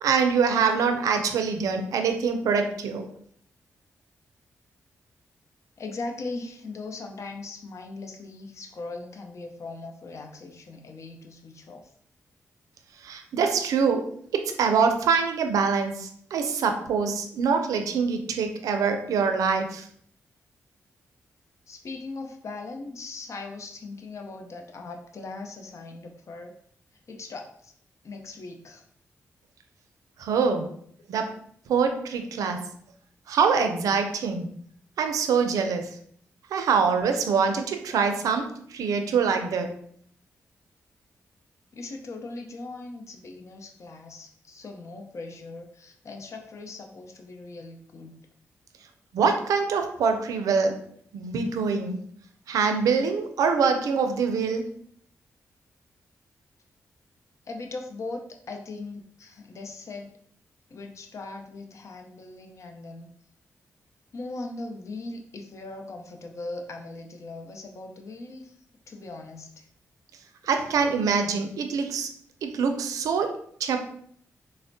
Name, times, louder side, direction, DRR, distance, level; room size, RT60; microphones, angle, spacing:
voice 1, 0.0-3.1 13.0-14.1 14.3-19.9 30.2-30.7 31.1-31.3 31.7-32.6 33.3-34.5 35.0-35.9 36.5-39.7 49.1-50.8 51.1-52.0 52.5-54.7 70.4-72.1 72.4-73.8, right 5 dB, 85° right, 6 dB, 0.4 m, -24 dB
voice 2, 5.8-11.9 21.7-26.5 27.1-27.7 28.0-28.8 41.7-48.1 57.5-60.1 60.7-63.1 64.1-68.5 68.9-69.7, left 3 dB, 60° left, 3 dB, 0.6 m, -39 dB
4.2 x 2.0 x 2.6 m, 0.63 s
cardioid pair, 55°, 6 cm